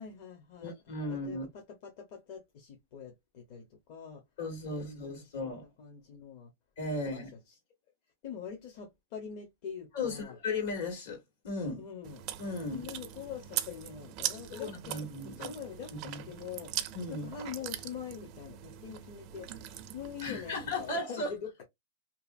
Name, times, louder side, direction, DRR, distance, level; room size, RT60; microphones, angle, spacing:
voice 1, 0.0-1.4 1.7-4.2 4.6-5.5 5.8-6.5 6.9-7.2 8.2-10.4 11.8-12.2 12.7-15.0 15.4-16.8 17.1-19.5 19.9-21.7, left 7 dB, 50° left, 0.8 m, -44 dB
voice 2, 0.6-1.5 4.4-5.6 6.8-7.3 9.9-11.8 12.4-12.9 14.5-15.5 15.9-16.2 16.9-17.3 20.2-21.3, left 2 dB, 75° left, 1.6 m, -36 dB
Chewing mastication, 12.0-20.9, right 12 dB, 40° right, 0.4 m, -41 dB
2.7 x 2.6 x 2.4 m
supercardioid pair, 145°, 0 cm